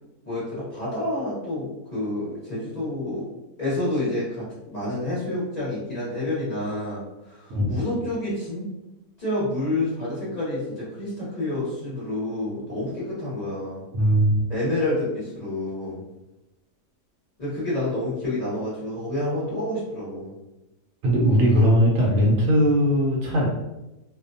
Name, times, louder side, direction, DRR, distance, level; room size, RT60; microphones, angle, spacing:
voice 1, 0.2-3.3 3.6-8.6 9.2-13.8 14.5-16.0 17.4-20.3, left 1 dB, 30° left, -10 dB, 0.9 m, -28 dB
voice 2, 13.9-14.4 21.0-23.5, equal, 70° right, -3 dB, 0.9 m, -19 dB
2.6 x 2.1 x 2.5 m, 0.98 s
omnidirectional pair, 1.6 m